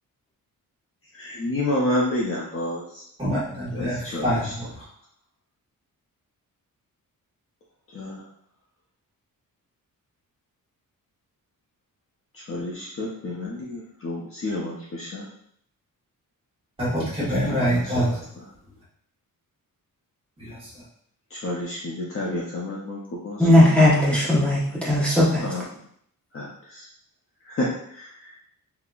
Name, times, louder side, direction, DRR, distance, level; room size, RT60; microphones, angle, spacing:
voice 1, 1.1-3.0 3.7-4.5 7.9-8.2 12.3-15.3 17.5-18.4 21.3-23.8 25.4-25.7 26.3-26.9 27.4-28.3, left 1 dB, 40° left, -4 dB, 0.6 m, -30 dB
voice 2, 3.2-4.6 16.8-18.2 20.4-20.7, equal, 15° right, -9 dB, 1.4 m, -25 dB
voice 3, 23.4-25.4, left 1 dB, 5° left, -8 dB, 1.0 m, -17 dB
3.9 x 2.8 x 2.3 m, 0.67 s
wide cardioid pair, 175°, 35 cm